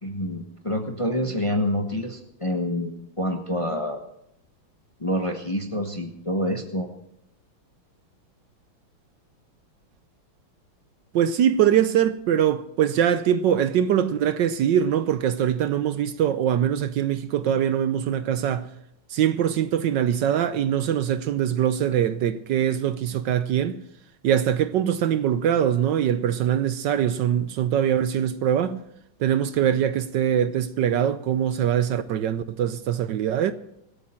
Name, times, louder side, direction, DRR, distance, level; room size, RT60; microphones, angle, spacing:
voice 1, 0.0-4.0 5.0-6.9, left 1 dB, 20° left, 1.0 m, -27 dB
voice 2, 11.1-18.7 19.1-23.8 24.2-28.8 29.2-33.5, right 9 dB, 70° right, 1.3 m, -23 dB
25.0 x 8.5 x 4.4 m
omnidirectional pair, 2.2 m